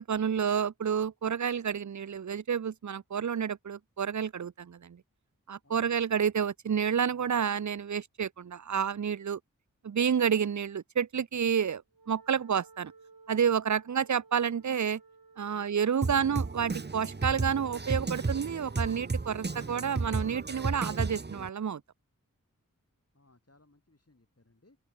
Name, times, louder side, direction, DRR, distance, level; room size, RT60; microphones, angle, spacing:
voice 1, 0.0-5.0 5.5-9.4 9.8-11.8 12.1-12.9 13.3-15.0 15.4-21.8, right 7 dB, 60° right, 0.6 m, -29 dB
voice 2, 5.6-6.0 15.5-16.7 23.1-24.8, left 2 dB, 45° left, 6.0 m, -64 dB
Wind instrument woodwind instrument, 11.9-18.2, right 4 dB, 90° right, 2.6 m, -57 dB
Drum kit, 16.0-21.5, right 3 dB, 30° right, 0.8 m, -33 dB
open air
wide cardioid pair, 50°, 34 cm